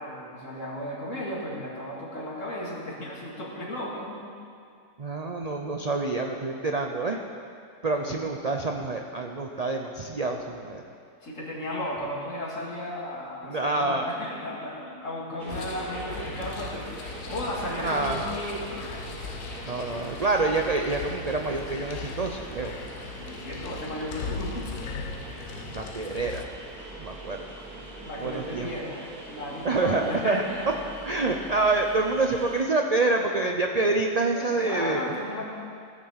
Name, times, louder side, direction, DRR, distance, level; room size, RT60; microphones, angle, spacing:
voice 1, 0.0-4.2 7.9-8.2 11.2-16.9 17.3-18.9 23.2-24.7 28.0-30.7 34.3-35.5, left 1 dB, 55° left, -4 dB, 2.6 m, -34 dB
voice 2, 5.0-7.2 7.8-10.8 13.4-14.1 17.8-18.2 19.7-22.7 25.7-26.5 27.0-27.5 28.2-28.7 29.6-30.4 31.1-35.0, right 3 dB, 50° right, 2 dB, 0.4 m, -27 dB
sound 1, 15.4-32.6, right 2 dB, 80° right, 2.4 m, -42 dB
sound 2, 15.5-26.4, left 5 dB, 75° left, 1.2 m, -39 dB
16.5 x 6.3 x 7.3 m, 2.3 s
omnidirectional pair, 1.6 m